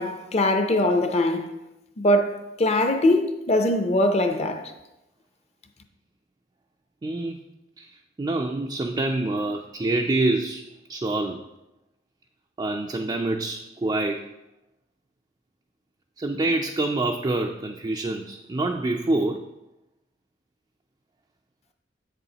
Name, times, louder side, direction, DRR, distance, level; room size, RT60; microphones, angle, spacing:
voice 1, 0.0-1.5 2.0-4.6, left 1 dB, 35° left, 0.6 m, -22 dB
voice 2, 7.0-7.4 7.8-11.4 12.6-14.2 16.2-19.5, right 2 dB, 25° right, 0.3 m, -26 dB
7.9 x 6.8 x 2.8 m
head